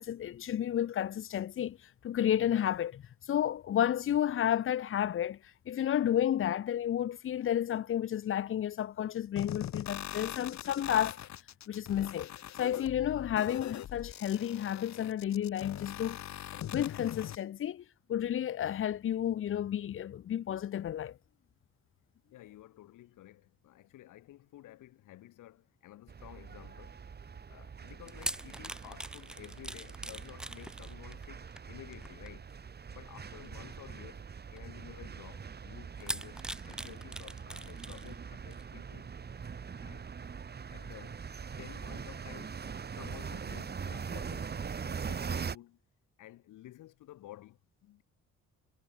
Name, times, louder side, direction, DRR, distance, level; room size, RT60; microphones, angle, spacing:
voice 1, 0.0-1.8 2.0-3.0 3.3-5.4 5.7-11.3 11.7-12.3 12.6-16.2 16.5-21.2, left 10 dB, 45° left, 0.6 m, -31 dB
sound 1, 9.4-17.4, left 11 dB, 65° left, 1.5 m, -42 dB
voice 2, 22.3-27.0 27.3-32.5 32.9-34.2 34.5-39.1 39.8-40.1 40.7-45.8 46.2-48.0, left 15 dB, 85° left, 6.4 m, -53 dB
sound 2, 26.1-45.5, right 6 dB, 35° right, 1.3 m, -42 dB
sound 3, 27.9-32.7 33.4-33.6 34.6-34.7 36.0-38.1 38.5-38.6, right 1 dB, 5° right, 0.6 m, -42 dB
cardioid pair, 90°, 30 cm